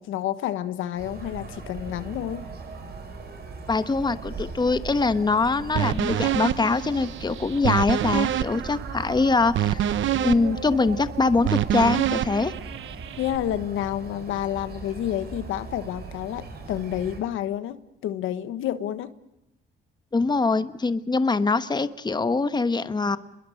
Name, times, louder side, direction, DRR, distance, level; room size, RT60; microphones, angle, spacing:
voice 1, 0.0-2.4 9.9-10.1 13.2-17.8 18.0-19.1, left 11 dB, 85° left, 12 dB, 1.3 m, -29 dB
sound 1, 1.0-17.2, right 4 dB, 55° right, 6.8 m, -39 dB
voice 2, 3.7-9.8 10.2-12.5 20.1-23.2, left 3 dB, 20° left, 12 dB, 1.1 m, -23 dB
sound 2, 5.8-13.4, right 11 dB, 75° right, 1.0 m, -27 dB
27.5 x 22.0 x 6.5 m, 0.93 s
cardioid pair, 90°, 20 cm